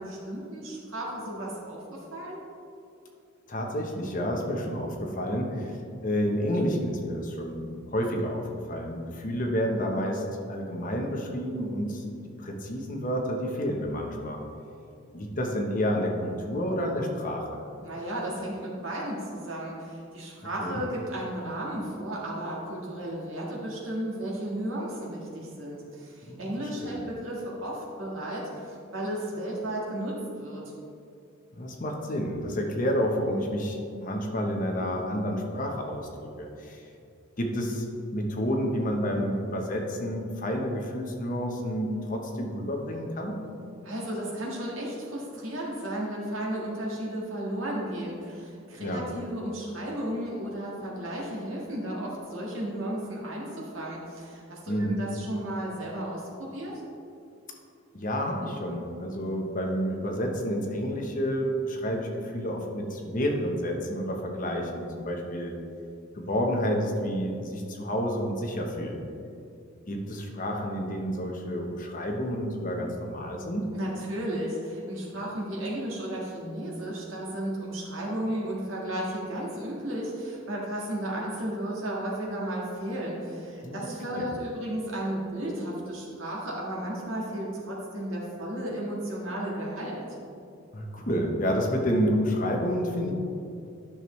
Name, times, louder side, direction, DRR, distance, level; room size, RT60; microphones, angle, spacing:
voice 1, 0.0-2.4 17.8-30.6 43.8-56.7 73.7-90.0, right 1 dB, 65° right, -4 dB, 1.7 m, -34 dB
voice 2, 3.5-5.8 6.0-10.2 10.5-12.0 12.4-14.4 15.1-17.6 20.6-20.8 26.3-26.4 26.8-26.9 31.6-36.8 37.4-43.4 48.8-49.0 54.7-55.0 57.9-65.6 66.1-69.0 69.9-73.7 83.6-84.3 90.7-93.1, equal, 40° left, 1 dB, 0.9 m, -29 dB
10.0 x 6.2 x 3.2 m, 2.5 s
head